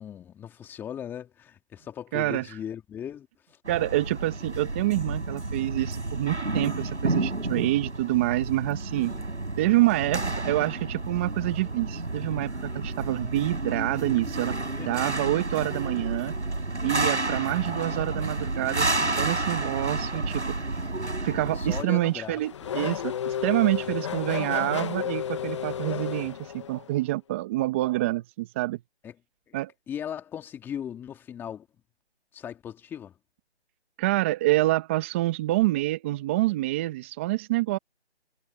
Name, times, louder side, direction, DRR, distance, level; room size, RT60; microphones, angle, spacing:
voice 1, 0.0-3.3 8.9-9.3 14.8-14.9 17.6-17.9 21.6-22.7 29.0-29.1 29.5-31.7 32.3-33.1, left 9 dB, 5° left, 2.8 m, -38 dB
voice 2, 2.1-2.6 3.7-9.1 9.6-14.6 14.9-16.3 16.8-20.6 21.2-28.8 29.5-29.7 34.0-37.8, right 17 dB, 10° right, 1.2 m, -27 dB
sound 1, 3.6-21.8, right 2 dB, 90° right, 7.6 m, -30 dB
Race car auto racing / Accelerating revving vroom, 21.5-27.0, left 9 dB, 25° left, 1.7 m, -33 dB
figure-of-eight pair, 160°, 34 cm